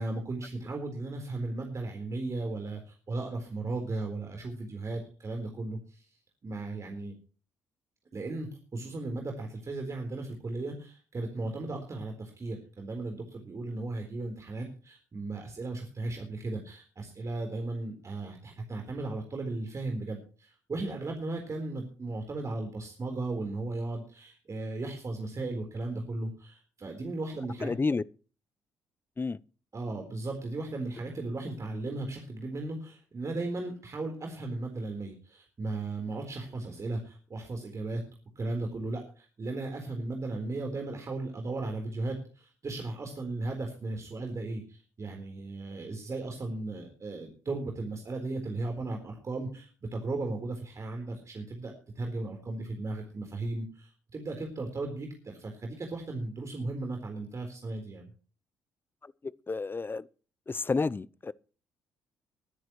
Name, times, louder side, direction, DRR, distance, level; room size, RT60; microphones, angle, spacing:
voice 1, 0.0-6.1 6.4-7.1 8.1-27.7 29.7-38.1 38.4-58.1, right 2 dB, 40° right, 4.0 m, -36 dB
voice 2, 27.6-28.0 29.2-29.4 59.0-60.1 60.5-61.3, left 4 dB, 25° left, 0.7 m, -31 dB
21.5 x 10.5 x 3.1 m
hypercardioid pair, 45°, 8 cm